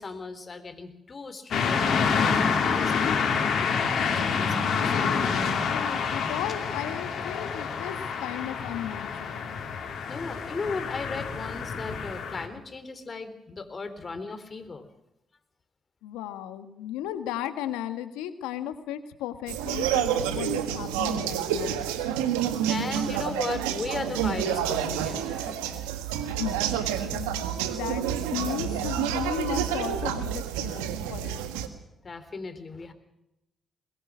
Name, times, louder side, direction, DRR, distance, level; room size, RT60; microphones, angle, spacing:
voice 1, 0.0-5.0 9.8-14.9 22.1-25.6 32.0-32.9, left 4 dB, 40° left, 10 dB, 3.7 m, -37 dB
sound 1, 1.5-12.5, left 6 dB, 65° left, 4.2 m, -27 dB
voice 2, 5.7-9.6 16.0-21.8 26.2-28.0 28.3-31.4, left 11 dB, 85° left, 10 dB, 1.6 m, -35 dB
sound 2, 19.5-31.7, right 9 dB, 90° right, 1.6 m, -29 dB
22.0 x 21.5 x 6.3 m, 0.90 s
hypercardioid pair, 45°, 0 cm